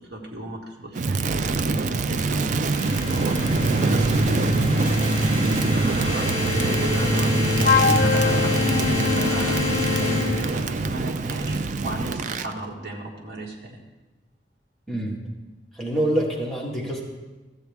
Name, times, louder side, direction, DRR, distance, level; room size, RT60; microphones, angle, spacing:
voice 1, 0.0-2.4 3.0-4.7 5.7-13.8, right 1 dB, 60° right, -2 dB, 1.8 m, -35 dB
Crackle, 0.9-12.5, right 3 dB, 45° right, 0.4 m, -25 dB
sound 1, 2.6-11.0, left 1 dB, 35° left, 3.6 m, -26 dB
Wind instrument woodwind instrument, 7.6-10.5, left 6 dB, 55° left, 0.4 m, -24 dB
voice 2, 14.9-15.2 15.7-17.0, right 1 dB, 5° left, -4 dB, 1.6 m, -25 dB
14.0 x 8.1 x 3.5 m, 1.1 s
head